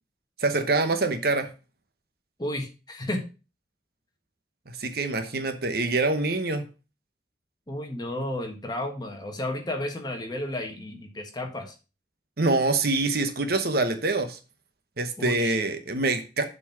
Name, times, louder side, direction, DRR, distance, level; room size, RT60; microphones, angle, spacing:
voice 1, 0.4-1.5 4.7-6.6 12.4-14.4 15.0-16.5, right 3 dB, 55° right, 8 dB, 1.0 m, -25 dB
voice 2, 2.4-3.2 7.7-11.7 15.2-15.6, left 1 dB, 20° left, 3 dB, 1.4 m, -32 dB
7.2 x 4.4 x 6.0 m, 0.32 s
head